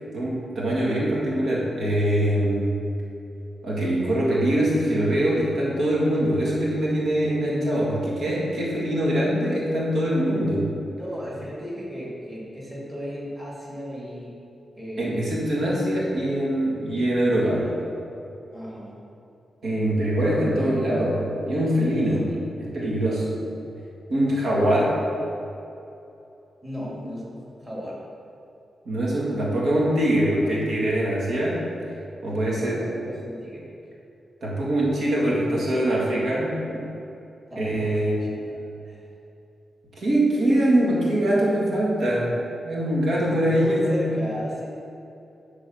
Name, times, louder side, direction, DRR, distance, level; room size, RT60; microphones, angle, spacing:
voice 1, 0.1-2.7 3.6-10.7 15.0-17.6 19.6-22.3 22.6-23.4 24.1-25.0 28.9-31.6 32.2-32.8 34.4-36.9 37.6-38.2 40.0-42.4 42.6-44.0, right 1 dB, 65° right, -5 dB, 1.8 m, -23 dB
voice 2, 11.0-14.4 14.8-15.8 16.0-16.3 17.4-17.9 18.5-18.9 20.3-20.4 22.3-22.4 26.6-28.0 32.5-33.7 37.5-39.0 43.1-44.7, equal, 15° right, -6 dB, 2.1 m, -35 dB
10.5 x 3.8 x 6.6 m, 2.8 s
wide cardioid pair, 170°, 0 cm